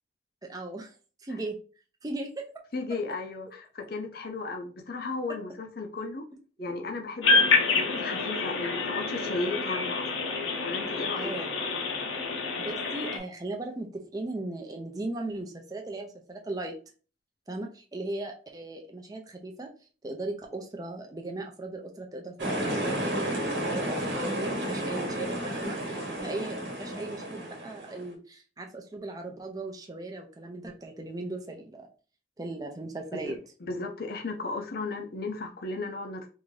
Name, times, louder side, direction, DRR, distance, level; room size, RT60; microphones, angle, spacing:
voice 1, 0.4-0.9 1.2-1.6 2.0-2.5 6.6-6.7 11.2-11.9 12.6-16.7 17.5-19.7 20.0-31.9 32.4-33.4, right 2 dB, 20° right, 1 dB, 0.5 m, -38 dB
voice 2, 2.7-6.2 6.6-10.3 10.6-11.9 33.1-33.3 33.6-36.3, left 3 dB, 50° left, 3 dB, 0.5 m, -35 dB
sound 1, 7.2-13.2, left 3 dB, 90° left, 0.8 m, -27 dB
sound 2, 22.4-28.1, right 1 dB, 70° right, 1.1 m, -32 dB
3.5 x 2.6 x 3.2 m, 0.37 s
head